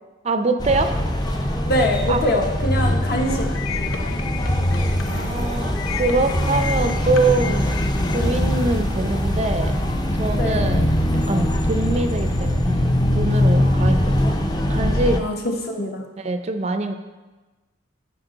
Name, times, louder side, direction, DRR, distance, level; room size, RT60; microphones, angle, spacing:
voice 1, 0.2-1.0 2.1-2.2 5.1-7.8 8.1-9.8 10.2-14.4 14.7-15.2 16.2-16.9, right 2 dB, 35° right, 8 dB, 0.5 m, -24 dB
sound 1, 0.6-15.2, left 1 dB, 20° left, 0.6 m, -22 dB
voice 2, 1.6-3.5 10.3-10.8 13.5-14.4 15.2-16.0, left 1 dB, 50° left, 2 dB, 1.1 m, -24 dB
sound 2, 3.1-8.2, left 7 dB, 85° left, 0.6 m, -34 dB
13.0 x 5.2 x 3.9 m, 1.2 s
head